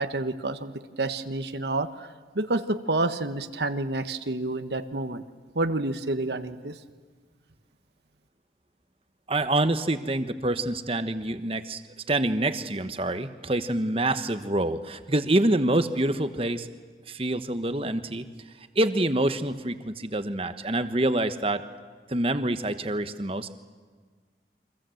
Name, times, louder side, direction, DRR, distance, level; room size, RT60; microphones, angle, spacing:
voice 1, 0.0-2.1 2.3-5.2 5.5-6.8, right 2 dB, 70° right, 9 dB, 1.3 m, -29 dB
voice 2, 9.3-11.8 12.1-16.7 17.1-18.3 18.7-21.6 22.1-23.6, right 1 dB, 30° right, 10 dB, 1.2 m, -26 dB
29.5 x 24.5 x 7.9 m, 1.5 s
head